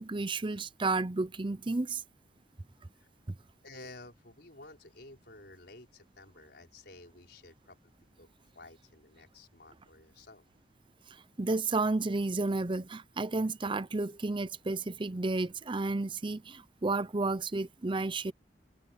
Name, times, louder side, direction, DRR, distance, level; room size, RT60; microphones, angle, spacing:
voice 1, 0.0-2.0 11.4-18.3, right 3 dB, 25° right, 0.6 m, -32 dB
voice 2, 3.6-8.3 8.5-10.5, left 2 dB, 60° left, 5.4 m, -53 dB
head